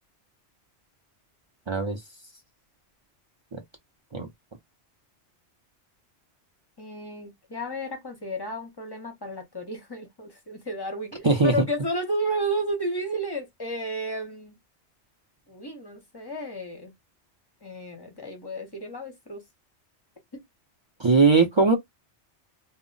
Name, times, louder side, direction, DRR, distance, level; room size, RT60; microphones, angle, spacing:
voice 1, 1.7-2.0 3.5-3.6 4.1-4.3 11.2-11.7 21.0-21.8, right 4 dB, 45° right, 0.4 m, -20 dB
voice 2, 6.8-14.6 15.5-16.9 17.6-19.4 20.3-20.4, right 1 dB, 25° left, 0.6 m, -32 dB
2.1 x 2.0 x 3.7 m
omnidirectional pair, 1.2 m